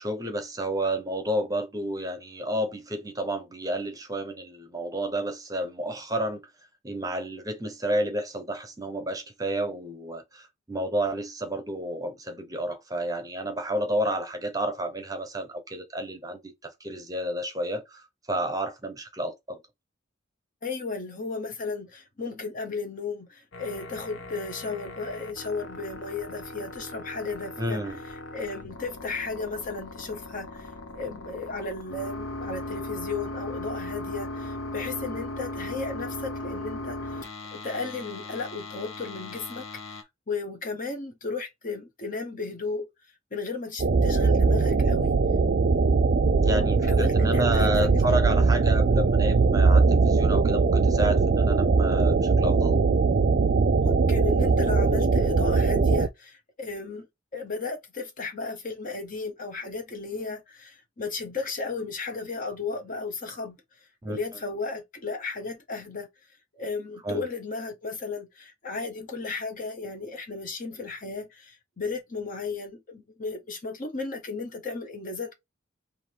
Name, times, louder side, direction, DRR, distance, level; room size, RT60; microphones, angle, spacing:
voice 1, 0.0-6.4 6.8-19.6 27.6-28.0 46.4-52.7 64.0-64.2 67.0-67.3, right 1 dB, 20° right, 0.8 m, -30 dB
voice 2, 20.6-42.9 43.3-45.2 46.9-48.0 53.8-57.1 57.3-66.1 66.6-75.3, left 4 dB, 45° left, 1.0 m, -35 dB
sound 1, 23.5-40.0, left 2 dB, 85° left, 0.9 m, -38 dB
sound 2, 43.8-56.1, right 4 dB, 50° right, 0.4 m, -21 dB
3.6 x 2.6 x 4.6 m
head